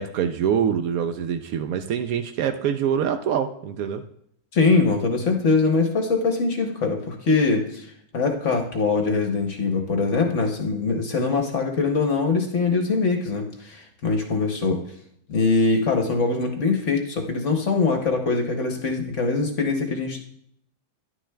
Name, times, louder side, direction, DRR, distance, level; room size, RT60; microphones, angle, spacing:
voice 1, 0.0-4.0, right 8 dB, 85° right, 7 dB, 0.7 m, -25 dB
voice 2, 4.5-14.8 15.3-20.2, left 4 dB, 50° left, 3 dB, 1.0 m, -23 dB
11.0 x 9.7 x 2.2 m, 0.70 s
omnidirectional pair, 2.0 m